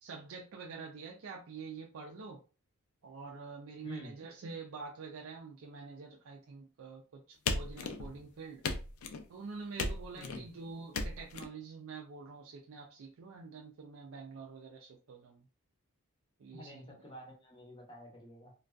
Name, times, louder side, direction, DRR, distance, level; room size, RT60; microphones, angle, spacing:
voice 1, 0.0-2.4 3.0-8.6 9.3-15.4 16.4-17.0, right 4 dB, 65° right, 1 dB, 0.4 m, -47 dB
voice 2, 3.8-4.1 10.1-10.5 16.5-18.5, left 1 dB, 20° left, 0 dB, 0.7 m, -49 dB
sound 1, 7.5-8.2 8.6-9.3 9.8-10.4 10.9-11.4, left 3 dB, 70° left, 0.4 m, -36 dB
2.5 x 2.3 x 2.2 m, 0.35 s
head